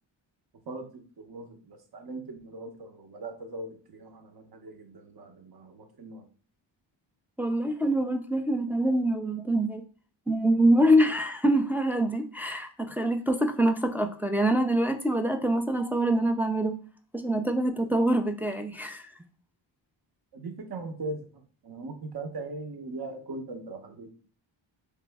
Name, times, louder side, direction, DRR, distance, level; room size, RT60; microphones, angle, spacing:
voice 1, 0.7-6.3 20.3-24.1, right 2 dB, 50° right, 5 dB, 0.9 m, -40 dB
voice 2, 7.4-9.8 10.3-16.8 17.1-19.1, right 1 dB, 5° right, 4 dB, 0.3 m, -25 dB
3.4 x 3.0 x 3.4 m, 0.42 s
cardioid pair, 95°, 47 cm